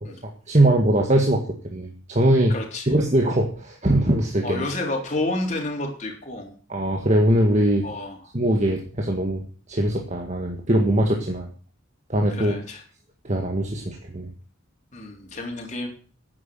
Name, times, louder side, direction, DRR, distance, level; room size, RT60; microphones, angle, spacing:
voice 1, 0.0-1.4 1.7-2.5 2.9-4.7 6.7-7.9 8.3-9.4 9.7-11.5 12.1-12.6 13.2-14.3, right 1 dB, 35° right, 2 dB, 1.8 m, -21 dB
voice 2, 2.5-2.9 4.4-6.6 7.8-8.2 12.3-12.8 14.9-15.9, left 2 dB, 35° left, 1 dB, 3.7 m, -30 dB
11.0 x 9.4 x 7.8 m, 0.41 s
head